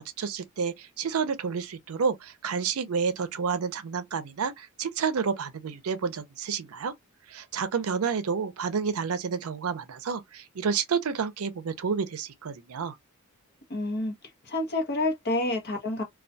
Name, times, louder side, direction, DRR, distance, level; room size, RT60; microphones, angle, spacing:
voice 1, 0.0-6.9 7.3-13.0, right 6 dB, 80° right, 0.5 m, -30 dB
voice 2, 13.7-14.1 14.4-16.0, left 2 dB, 50° left, 0.8 m, -28 dB
2.3 x 2.2 x 2.6 m
head